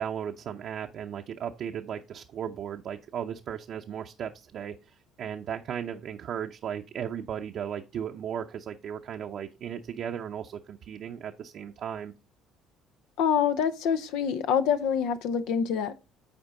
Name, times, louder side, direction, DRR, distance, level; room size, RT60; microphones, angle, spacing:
voice 1, 0.0-12.1, right 9 dB, 60° right, 0.6 m, -36 dB
voice 2, 13.2-15.9, left 7 dB, 75° left, 0.7 m, -26 dB
8.9 x 4.4 x 3.8 m
hypercardioid pair, 65°, 0 cm